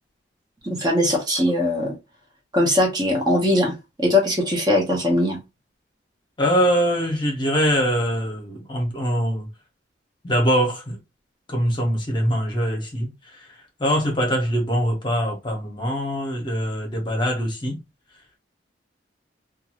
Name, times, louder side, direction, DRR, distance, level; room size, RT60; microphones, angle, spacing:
voice 1, 0.6-1.9 2.5-5.4, left 1 dB, 20° right, 0.7 m, -20 dB
voice 2, 6.4-9.5 10.2-11.0 11.5-13.1 13.8-17.8, equal, 25° left, 0.8 m, -23 dB
2.5 x 2.4 x 2.8 m
head